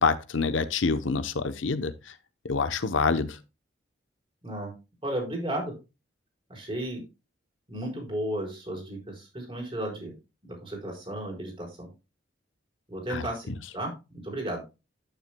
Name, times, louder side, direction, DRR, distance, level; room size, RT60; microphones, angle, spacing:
voice 1, 0.0-1.9 2.4-3.4 13.1-13.3, left 4 dB, 90° left, 0.8 m, -26 dB
voice 2, 5.0-5.7 6.5-7.0 7.7-10.1 10.4-11.9 12.9-13.9 14.2-14.6, right 1 dB, 30° right, 4.6 m, -34 dB
10.0 x 9.1 x 2.2 m
head